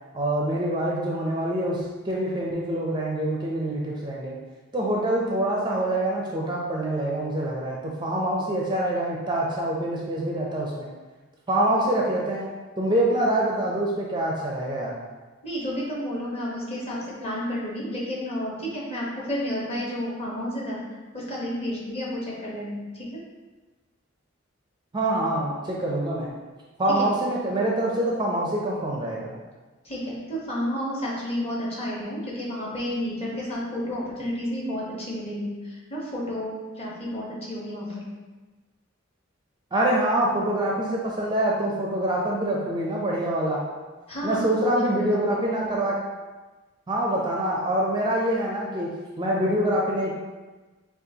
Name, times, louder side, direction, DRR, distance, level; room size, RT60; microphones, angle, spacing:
voice 1, 0.1-4.4 4.7-10.9 11.5-12.5 12.8-15.0 24.9-26.3 26.8-29.3 39.7-43.6 44.2-46.0 46.9-50.1, right 1 dB, 20° right, -3 dB, 0.5 m, -25 dB
voice 2, 15.4-20.8 21.1-23.2 27.0-27.1 29.8-38.0 44.1-45.4, equal, 30° left, -5 dB, 1.0 m, -31 dB
6.6 x 2.4 x 2.8 m, 1.2 s
head